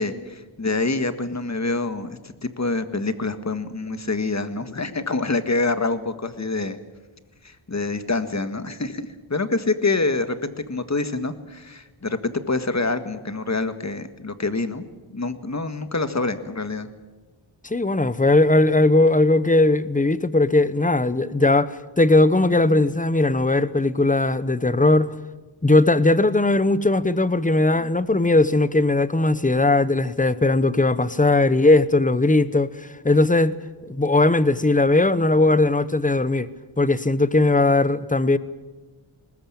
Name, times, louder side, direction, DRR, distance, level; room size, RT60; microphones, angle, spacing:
voice 1, 0.0-6.8 7.4-14.8 15.1-16.9 27.8-27.9, left 3 dB, 35° left, 1.7 m, -26 dB
voice 2, 17.6-25.1 25.6-33.6 33.8-36.5 36.8-38.4, left 2 dB, 15° left, 1.0 m, -19 dB
21.0 x 20.0 x 8.8 m
wide cardioid pair, 85°, 48 cm